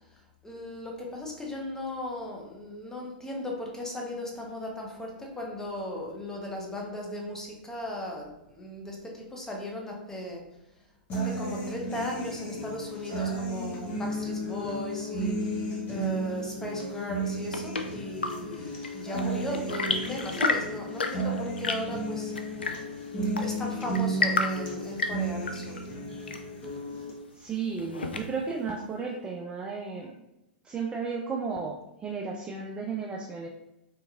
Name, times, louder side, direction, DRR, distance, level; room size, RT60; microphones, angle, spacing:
voice 1, 0.4-10.4 11.1-22.3 23.4-25.8, left 1 dB, 10° left, -1 dB, 0.9 m, -37 dB
sound 1, 11.1-27.1, right 2 dB, 35° left, 1.1 m, -33 dB
Chirp tweet / Engine / Tap, 17.1-28.6, left 3 dB, 90° left, 0.4 m, -34 dB
voice 2, 27.4-30.1 30.6-33.5, right 5 dB, 15° right, 0 dB, 0.4 m, -34 dB
3.6 x 2.8 x 2.4 m, 0.90 s
hypercardioid pair, 105°, 5 cm